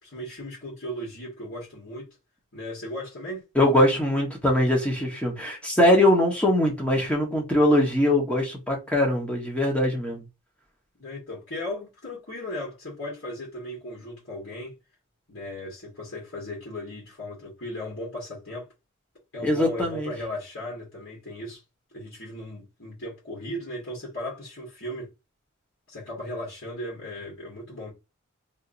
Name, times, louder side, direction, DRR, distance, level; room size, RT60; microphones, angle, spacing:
voice 1, 0.0-2.2 2.5-3.5 11.0-14.7 15.3-18.7 19.3-21.6 21.9-25.1 25.9-27.9, left 1 dB, 60° left, 1.8 m, -36 dB
voice 2, 3.5-10.2 19.4-20.1, left 1 dB, 5° left, 1.2 m, -22 dB
3.6 x 2.9 x 2.6 m
head